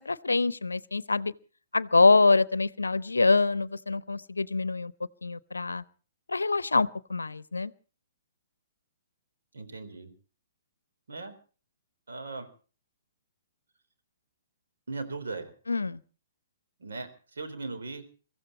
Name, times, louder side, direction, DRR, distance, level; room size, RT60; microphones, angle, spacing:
voice 1, 0.0-1.3 1.7-4.9 5.2-5.8 6.3-7.7 15.7-16.0, left 3 dB, 85° left, 0.7 m, -25 dB
voice 2, 9.5-10.1 11.1-11.3 12.1-12.5 14.9-15.5 16.8-18.0, right 3 dB, 70° right, 3.9 m, -38 dB
23.5 x 15.0 x 4.2 m
figure-of-eight pair, 125°, 0 cm